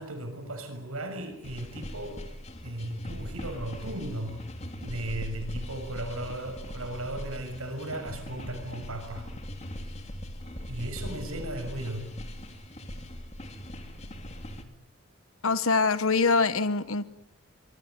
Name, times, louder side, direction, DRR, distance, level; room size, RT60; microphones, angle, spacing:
voice 1, 0.0-2.2 2.6-4.4 4.8-9.3 10.7-12.1, right 1 dB, 80° right, 7 dB, 6.5 m, -36 dB
sound 1, 1.4-14.6, equal, 30° left, 2.6 m, -40 dB
voice 2, 15.4-17.0, left 4 dB, 75° left, 14 dB, 1.1 m, -24 dB
26.0 x 23.0 x 9.5 m, 0.84 s
head